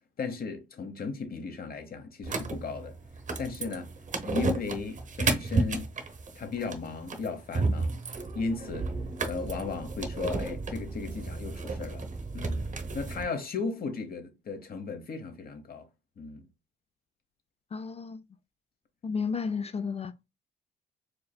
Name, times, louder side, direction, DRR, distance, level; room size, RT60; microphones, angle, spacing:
voice 1, 0.2-2.9 3.4-3.9 4.2-6.0 6.3-8.0 8.3-8.9 9.2-12.0 12.3-12.6 12.9-15.8 16.2-16.4, left 4 dB, 50° left, 1.0 m, -36 dB
sound 1, 2.2-13.2, right 3 dB, 40° right, 0.9 m, -32 dB
voice 2, 17.7-18.2 19.0-20.1, left 5 dB, 30° left, 0.4 m, -32 dB
4.7 x 3.2 x 2.2 m
cardioid pair, 90°, 20 cm